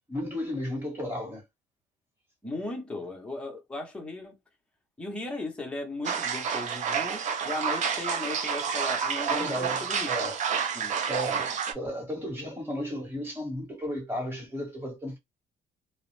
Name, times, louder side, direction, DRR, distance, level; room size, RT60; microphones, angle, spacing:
voice 1, 0.1-1.4 9.3-10.4 11.1-15.2, equal, 15° right, 1.2 m, -34 dB
voice 2, 2.4-4.4 5.0-10.1 10.7-10.9, left 2 dB, 5° left, 0.9 m, -37 dB
sound 1, 6.1-11.7, right 6 dB, 45° right, 0.5 m, -29 dB
2.3 x 2.0 x 3.1 m
cardioid pair, 110°, 17 cm